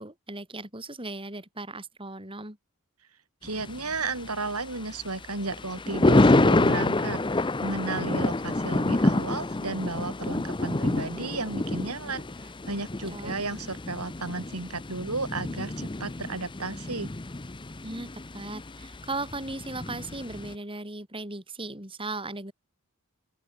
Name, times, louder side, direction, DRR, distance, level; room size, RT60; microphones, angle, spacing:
voice 1, 0.0-2.6 13.1-13.3 17.8-22.5, right 2 dB, 25° right, 6.7 m, -37 dB
Thunder, 3.4-20.5, left 2 dB, 20° left, 0.7 m, -28 dB
voice 2, 3.4-17.1, right 3 dB, 85° right, 5.6 m, -34 dB
open air
head